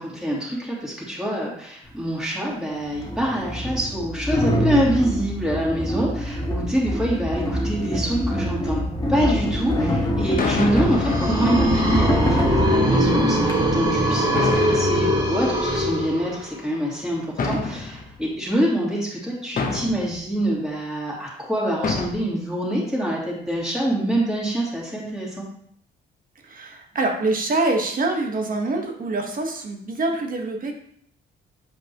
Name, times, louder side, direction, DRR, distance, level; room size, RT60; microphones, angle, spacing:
voice 1, 0.0-8.8 9.1-25.5, right 1 dB, 5° right, -5 dB, 2.8 m, -25 dB
sound 1, 1.9-2.0 2.9-13.5, equal, 20° left, 1.5 m, -25 dB
sound 2, 9.4-9.5 10.4-13.0 14.3-16.1 17.4-18.3 19.6-20.3 21.8-22.1, left 4 dB, 45° left, 1.0 m, -29 dB
sound 3, 10.7-16.6, equal, 20° right, 2.1 m, -22 dB
voice 2, 26.4-30.7, right 2 dB, 45° right, 2 dB, 1.5 m, -25 dB
7.9 x 5.2 x 3.1 m, 0.66 s
cardioid pair, 90°, 20 cm